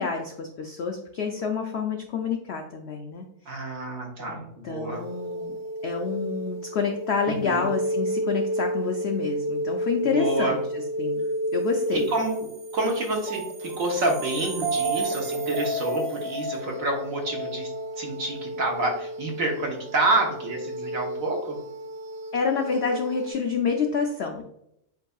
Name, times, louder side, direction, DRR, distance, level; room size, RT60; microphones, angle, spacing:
voice 1, 0.0-3.3 4.3-5.6 5.8-11.2 11.5-12.1 22.3-24.4, left 5 dB, 80° left, 3 dB, 0.5 m, -28 dB
voice 2, 3.5-5.0 7.3-7.7 10.0-10.6 11.9-12.5 12.7-17.7 18.0-21.6, right 2 dB, 60° right, 0 dB, 1.4 m, -28 dB
sound 1, 4.9-23.3, right 1 dB, 75° right, 0.5 m, -31 dB
7.7 x 2.7 x 2.3 m, 0.75 s
omnidirectional pair, 1.7 m